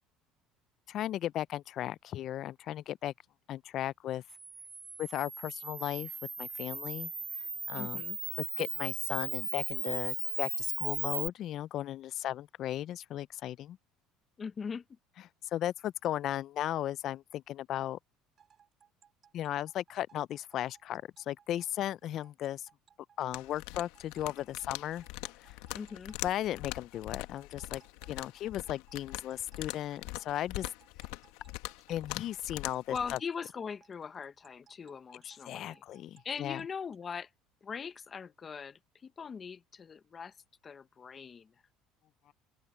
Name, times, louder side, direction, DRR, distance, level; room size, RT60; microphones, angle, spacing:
voice 1, 0.9-3.1 3.5-4.2 5.0-6.1 6.4-7.1 7.7-8.0 8.4-13.8 15.2-18.0 19.3-22.7 23.2-25.0 25.4-25.6 26.2-27.8 28.1-30.7 31.9-33.2 35.5-36.6 42.3-42.4, left 12 dB, 55° left, 0.5 m, -36 dB
Camera, 4.3-11.3, right 4 dB, 20° right, 0.8 m, -37 dB
voice 2, 7.7-8.2 14.4-14.8 25.7-26.1 32.9-35.8 36.2-37.3 37.6-40.3 40.6-41.5, left 6 dB, 30° left, 1.1 m, -41 dB
sound 1, 18.4-37.1, right 8 dB, 40° right, 5.5 m, -64 dB
sound 2, 23.3-33.2, left 20 dB, 85° left, 1.3 m, -43 dB
open air
supercardioid pair, 100°, 0 cm